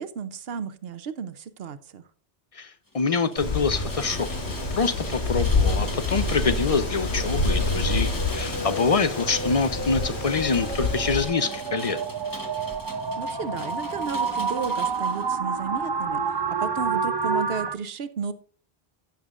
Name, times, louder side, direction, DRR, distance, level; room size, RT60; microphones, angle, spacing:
voice 1, 0.0-2.0 13.2-18.3, right 6 dB, 70° right, 0.9 m, -33 dB
voice 2, 2.5-4.3 4.7-12.0, left 4 dB, 40° left, 0.6 m, -25 dB
Rain, 2.9-15.3, left 2 dB, 20° left, 1.1 m, -41 dB
Wind, 3.4-11.2, left 3 dB, 85° left, 1.9 m, -27 dB
sound 1, 4.5-17.7, right 4 dB, 35° right, 0.5 m, -30 dB
16.0 x 7.0 x 2.5 m
omnidirectional pair, 1.1 m